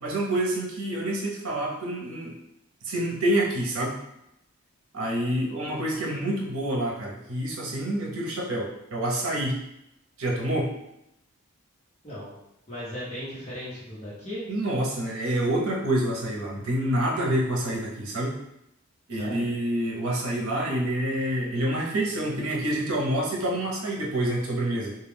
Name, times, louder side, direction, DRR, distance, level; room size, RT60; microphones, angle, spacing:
voice 1, 0.0-2.3 2.8-3.9 4.9-9.6 10.2-10.7 14.5-18.3 19.1-25.0, right 1 dB, 70° right, -2 dB, 0.7 m, -27 dB
voice 2, 12.7-14.4 19.1-19.4, equal, 30° left, -9 dB, 0.9 m, -36 dB
2.3 x 2.2 x 3.3 m, 0.82 s
head